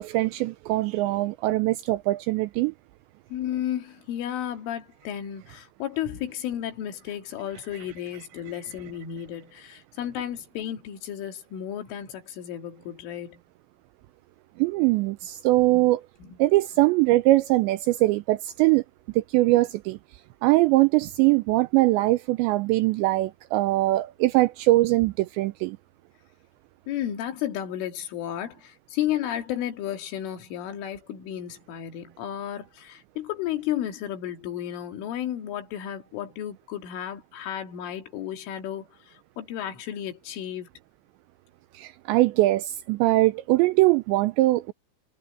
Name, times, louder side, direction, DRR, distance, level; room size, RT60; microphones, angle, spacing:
voice 1, 0.0-2.7 14.6-16.0 16.4-18.8 19.2-20.0 20.4-25.8 41.7-44.7, right 18 dB, 85° right, 2.6 m, -22 dB
voice 2, 3.3-13.4 15.7-15.9 16.2-16.4 26.9-40.7, left 11 dB, 75° left, 4.8 m, -33 dB
omnidirectional pair, 5.7 m